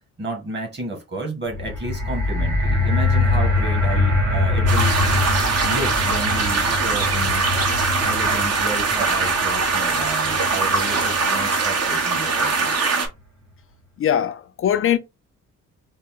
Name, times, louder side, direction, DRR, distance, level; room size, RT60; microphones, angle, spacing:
voice 1, 0.2-5.0 5.6-7.5 8.0-12.9, right 2 dB, 35° right, 1.7 m, -31 dB
sound 1, 1.5-11.7 12.4-12.5, left 2 dB, 85° right, 1.7 m, -23 dB
sound 2, 4.7-13.1, right 4 dB, 55° right, 1.1 m, -22 dB
voice 2, 14.0-15.0, left 10 dB, 45° left, 0.4 m, -21 dB
4.1 x 2.1 x 3.6 m
cardioid pair, 90°, 30 cm